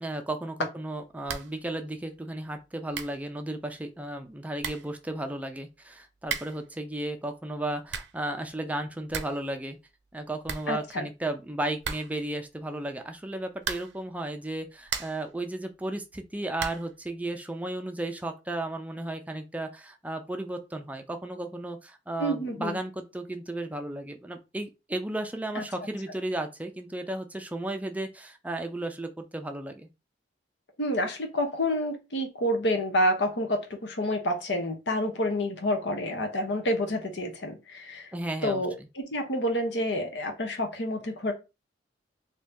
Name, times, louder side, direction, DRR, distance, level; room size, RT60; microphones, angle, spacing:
voice 1, 0.0-9.8 10.1-29.9 38.1-38.7, right 1 dB, 10° right, 0.4 m, -34 dB
sound 1, 1.2-1.6 1.9-2.0 2.6-2.7 2.9-3.3 4.2-4.3 4.6-5.0 6.2-6.7 7.6-8.2 8.6-8.7 8.9-9.5 9.7-9.8 10.1-10.2 10.4-11.2 11.8-12.3 13.6-14.1 14.6-15.3 16.6-17.0, right 6 dB, 80° right, 0.6 m, -36 dB
voice 2, 10.7-11.1 22.2-22.8 25.6-25.7 30.8-38.1 38.4-41.3, equal, 70° left, 0.9 m, -28 dB
2.9 x 2.7 x 3.5 m
head